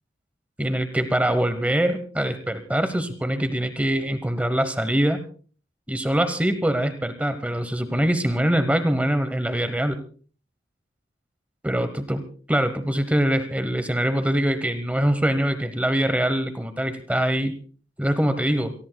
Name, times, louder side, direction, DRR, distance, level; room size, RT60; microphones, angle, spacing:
voice 1, 0.6-5.2 5.9-10.0 11.6-12.2 12.5-17.5 18.0-18.7, right 1 dB, 10° right, 10 dB, 1.0 m, -23 dB
27.5 x 18.5 x 2.3 m, 0.41 s
head